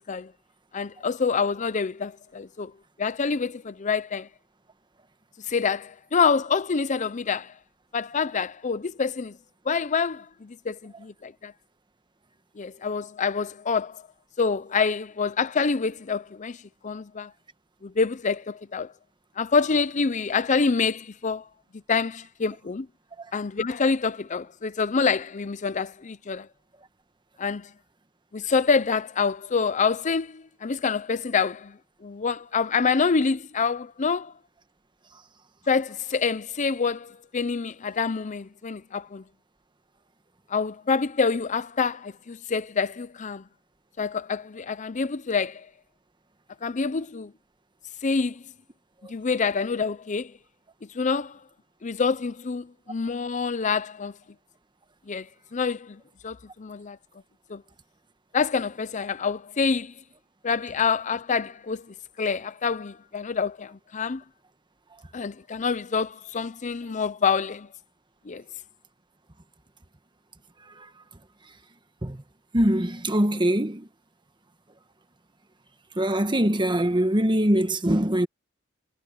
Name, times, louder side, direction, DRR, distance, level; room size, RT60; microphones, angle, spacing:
voice 1, 0.7-2.7 3.0-4.3 5.5-7.5 7.9-9.4 9.7-11.5 12.6-14.0 14.4-16.6 16.8-17.3 17.8-18.9 19.4-21.5 21.9-22.9 23.3-26.5 27.4-27.7 28.3-31.8 32.0-34.3 35.7-39.2 40.5-43.4 44.0-45.7 46.6-47.3 48.0-48.4 49.1-50.3 50.9-51.4 51.8-54.1 55.1-55.3 55.5-57.0 57.5-57.6 58.3-59.9 60.4-61.9 62.2-64.2 65.1-67.7 68.3-68.4, left 5 dB, 40° left, 0.5 m, -26 dB
voice 2, 72.5-73.9 76.0-78.3, right 1 dB, 25° right, 1.4 m, -22 dB
head